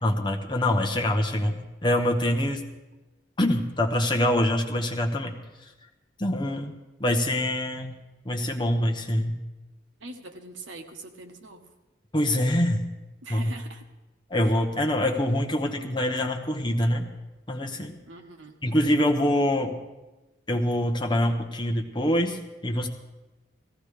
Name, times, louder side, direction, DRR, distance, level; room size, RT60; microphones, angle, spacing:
voice 1, 0.0-2.6 3.4-5.3 6.2-6.7 7.0-7.9 8.2-9.4 12.1-12.9 13.3-13.5 14.3-17.1 17.5-18.0 18.6-19.7 20.5-22.9, left 1 dB, 25° left, 2 dB, 1.0 m, -25 dB
voice 2, 10.0-11.7 13.2-13.8 18.1-18.6, right 2 dB, 85° right, 4 dB, 1.3 m, -42 dB
18.0 x 15.0 x 3.3 m, 1.1 s
head